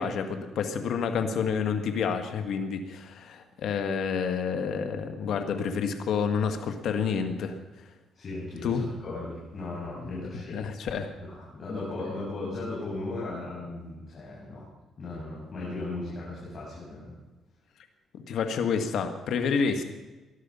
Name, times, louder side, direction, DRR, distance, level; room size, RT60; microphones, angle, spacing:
voice 1, 0.0-7.6 8.6-8.8 10.5-11.1 18.1-19.8, left 6 dB, 75° left, 6 dB, 1.8 m, -29 dB
voice 2, 8.1-10.6 11.2-14.7 15.0-17.1, left 2 dB, 45° left, -6 dB, 6.6 m, -36 dB
19.5 x 12.0 x 5.6 m, 1.2 s
cardioid pair, 90°, 0 cm